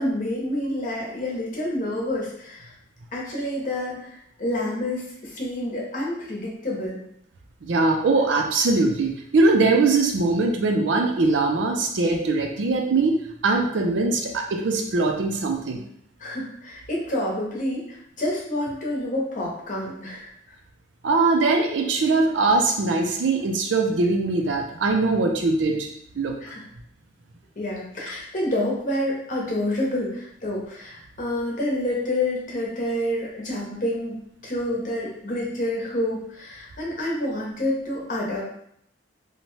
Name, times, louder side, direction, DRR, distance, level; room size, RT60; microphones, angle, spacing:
voice 1, 0.0-2.7 3.1-7.0 16.2-20.3 26.4-26.7 27.6-34.2 34.4-38.4, left 1 dB, 45° left, -3 dB, 0.8 m, -28 dB
voice 2, 7.6-13.2 13.4-15.8 21.0-25.9 26.2-26.3, right 3 dB, 75° right, 3 dB, 0.4 m, -21 dB
2.7 x 2.2 x 3.0 m, 0.70 s
head